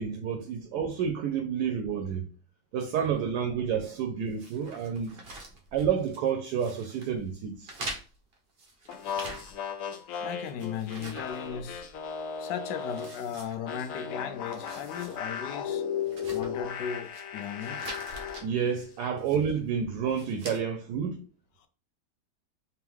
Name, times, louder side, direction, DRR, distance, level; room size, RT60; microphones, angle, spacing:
voice 1, 0.0-2.3 2.7-5.2 5.7-7.7 18.4-21.2, right 7 dB, 75° right, 1.1 m, -29 dB
sound 1, 4.4-6.3 6.6-7.1 7.6-9.8 10.1-12.0 12.4-12.5 12.9-14.0 14.4-15.2 15.5-15.6 16.0-17.2 17.6-18.5 19.2-19.6 20.0-20.6, right 2 dB, 50° right, 0.8 m, -44 dB
sound 2, 8.9-13.2 13.7-18.5, left 7 dB, 70° left, 0.8 m, -36 dB
voice 2, 10.2-11.9 12.4-15.8 16.3-17.9, left 8 dB, 85° left, 1.2 m, -36 dB
3.5 x 3.4 x 3.0 m
omnidirectional pair, 1.8 m